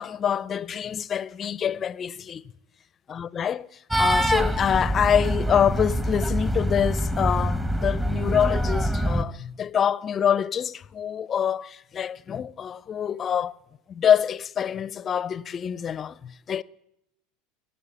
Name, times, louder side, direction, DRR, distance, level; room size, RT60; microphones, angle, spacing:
voice 1, 0.0-2.4 3.1-3.7 4.0-13.6 13.9-16.6, left 8 dB, 35° left, 0.6 m, -26 dB
sound 1, 3.9-9.2, equal, 10° right, 1.1 m, -25 dB
20.0 x 9.2 x 7.8 m
hypercardioid pair, 95°, 0 cm